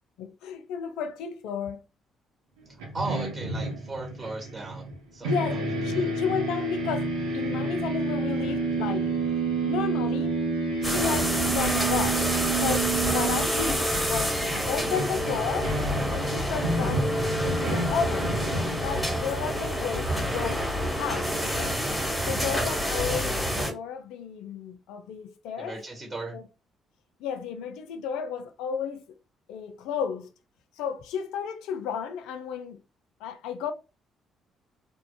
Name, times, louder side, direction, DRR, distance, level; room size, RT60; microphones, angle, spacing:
voice 1, 0.2-1.8 5.2-9.1 9.6-10.4 10.8-12.3 12.6-15.7 16.1-18.3 18.8-20.7 21.0-21.8 22.2-25.8 26.3-26.4 27.2-29.0 29.5-30.3 30.8-32.8 33.2-33.7, left 7 dB, 65° left, 0.3 m, -33 dB
sound 1, 2.8-5.0 5.2-19.2, right 3 dB, 75° right, 0.7 m, -30 dB
voice 2, 2.9-5.6 5.9-6.0 25.6-26.4, right 2 dB, 25° right, 1.1 m, -37 dB
sound 2, 10.8-23.7, equal, ahead, 1.4 m, -28 dB
3.5 x 2.2 x 2.2 m
figure-of-eight pair, 45°, 0 cm